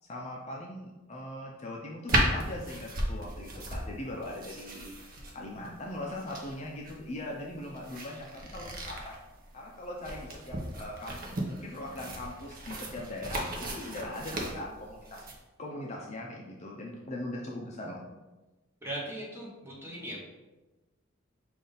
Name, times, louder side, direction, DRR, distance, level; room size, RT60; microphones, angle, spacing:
voice 1, 0.1-5.0 5.3-9.2 9.5-15.3 15.6-18.0, left 1 dB, 35° left, -1 dB, 0.5 m, -40 dB
sound 1, 2.1-15.4, right 1 dB, 45° right, 0.7 m, -35 dB
voice 2, 18.8-20.2, right 1 dB, 10° right, -6 dB, 1.1 m, -39 dB
5.4 x 2.5 x 3.9 m, 1.1 s
head